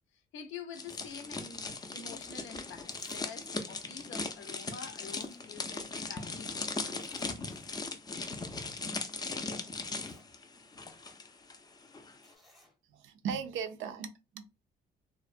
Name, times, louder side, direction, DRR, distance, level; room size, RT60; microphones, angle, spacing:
voice 1, 0.1-7.7, left 6 dB, 80° left, 0.5 m, -48 dB
sound 1, 0.7-11.6 11.8-12.1, left 3 dB, 20° left, 0.4 m, -39 dB
Zipper (clothing), 2.9-3.3 3.6-3.7 4.6-4.7 4.9-5.9 6.2-6.3 6.9-7.4 7.8-7.9 8.3-8.5 9.3-9.4 9.7-10.3 12.2-12.8 13.6-13.7, left 1 dB, ahead, 0.7 m, -62 dB
voice 2, 12.9-14.6, right 7 dB, 80° right, 0.4 m, -38 dB
2.4 x 2.1 x 2.4 m
cardioid pair, 90°, 20 cm